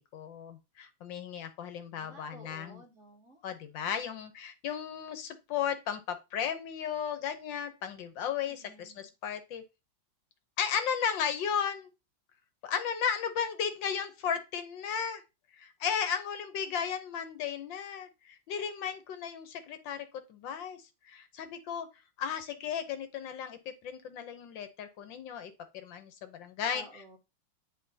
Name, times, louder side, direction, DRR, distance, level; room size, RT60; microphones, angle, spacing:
voice 1, 0.1-2.8 3.4-9.6 10.6-11.9 12.6-15.2 15.5-21.9 22.2-26.8, left 7 dB, 75° left, 9 dB, 1.6 m, -35 dB
voice 2, 1.9-3.4 8.5-9.1 26.7-27.2, equal, 40° right, -2 dB, 2.2 m, -52 dB
9.9 x 4.4 x 2.7 m, 0.26 s
omnidirectional pair, 2.1 m